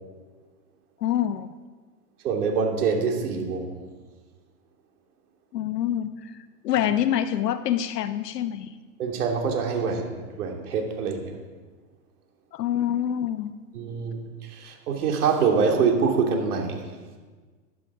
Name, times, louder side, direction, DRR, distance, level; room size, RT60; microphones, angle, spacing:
voice 1, 1.0-1.5 5.5-6.3 6.6-8.7 12.5-13.5, left 10 dB, 75° left, 11 dB, 1.1 m, -26 dB
voice 2, 2.2-3.8 9.0-11.4 13.7-16.9, right 5 dB, 65° right, 2 dB, 2.9 m, -25 dB
14.5 x 11.0 x 5.0 m, 1.4 s
hypercardioid pair, 150°, 48 cm